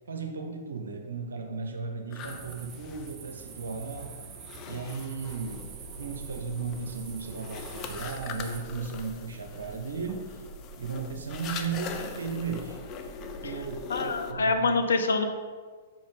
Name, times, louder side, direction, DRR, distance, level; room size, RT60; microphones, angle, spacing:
voice 1, 0.1-4.2 4.6-5.7 6.0-10.4 10.8-12.8 13.4-14.6, right 5 dB, 70° right, 4 dB, 0.8 m, -35 dB
sound 1, 2.1-14.3, left 6 dB, 30° left, 0.6 m, -43 dB
sound 2, 2.2-8.6, right 6 dB, 30° right, 0.7 m, -46 dB
sound 3, 5.2-14.4, right 4 dB, 5° right, 2.2 m, -47 dB
voice 2, 13.9-15.3, left 3 dB, 70° left, 6 dB, 0.7 m, -25 dB
5.4 x 5.2 x 5.2 m, 1.5 s
figure-of-eight pair, 110°, 0 cm